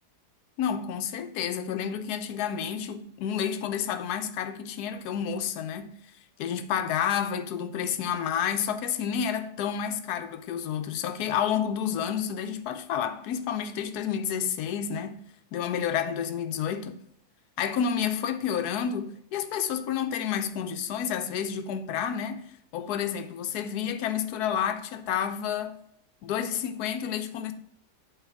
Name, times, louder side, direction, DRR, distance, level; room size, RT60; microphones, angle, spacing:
voice 1, 0.6-6.0 6.4-17.0 17.6-25.8 26.2-27.5, left 8 dB, 75° left, 1.2 m, -30 dB
8.1 x 4.1 x 4.5 m
omnidirectional pair, 1.7 m